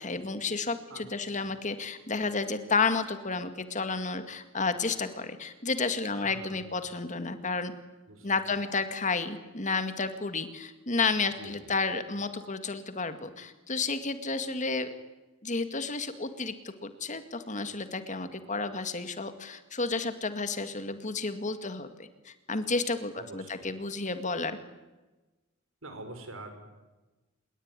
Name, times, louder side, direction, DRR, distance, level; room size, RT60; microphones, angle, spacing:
voice 1, 0.0-7.7 8.2-14.9 15.4-16.5 16.8-24.6, left 4 dB, 35° left, 10 dB, 2.1 m, -31 dB
voice 2, 0.9-1.5 6.1-6.7 8.1-8.6 11.4-11.7 23.1-23.7 25.8-26.5, right 2 dB, 75° right, 7 dB, 5.9 m, -46 dB
27.5 x 21.5 x 9.8 m, 1.2 s
head